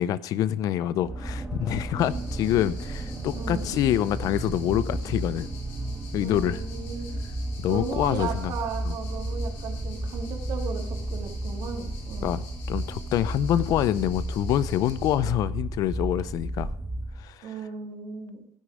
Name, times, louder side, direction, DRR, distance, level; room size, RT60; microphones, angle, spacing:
voice 1, 0.0-5.5 6.1-6.6 7.6-8.5 8.8-9.0 12.2-16.7 17.2-17.6, left 12 dB, 55° left, 17 dB, 0.6 m, -26 dB
sound 1, 1.0-17.3, right 1 dB, 10° right, 1.5 m, -33 dB
sound 2, 2.0-15.2, left 4 dB, 85° left, 5.1 m, -49 dB
voice 2, 3.3-3.7 6.2-7.2 7.7-12.3 17.4-18.4, right 6 dB, 55° right, 3 dB, 2.9 m, -36 dB
16.0 x 6.6 x 4.9 m, 0.66 s
cardioid pair, 135°, 7 cm